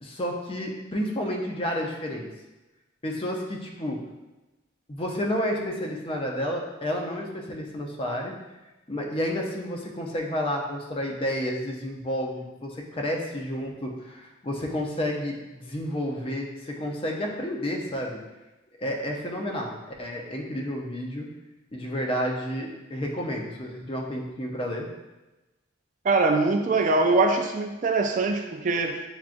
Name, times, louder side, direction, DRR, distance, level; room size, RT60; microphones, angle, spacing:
voice 1, 0.0-2.3 3.0-4.0 4.9-8.3 8.9-18.2 18.8-21.3 21.7-24.9, equal, 30° left, 0 dB, 0.6 m, -30 dB
voice 2, 26.0-29.0, right 3 dB, 40° right, 4 dB, 0.3 m, -23 dB
7.1 x 2.4 x 2.5 m, 1.1 s
head